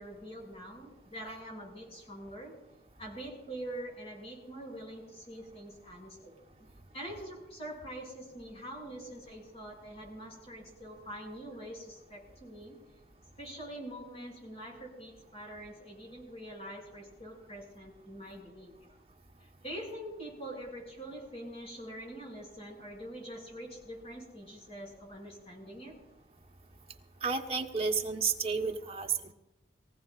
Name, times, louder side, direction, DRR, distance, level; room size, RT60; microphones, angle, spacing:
voice 1, 0.0-2.5 3.0-6.7 6.9-12.8 13.4-18.7 19.4-26.0, right 1 dB, 35° left, -2 dB, 6.4 m, -44 dB
voice 2, 27.2-29.3, right 5 dB, 35° right, 2 dB, 1.2 m, -31 dB
23.5 x 16.0 x 2.5 m, 0.94 s
head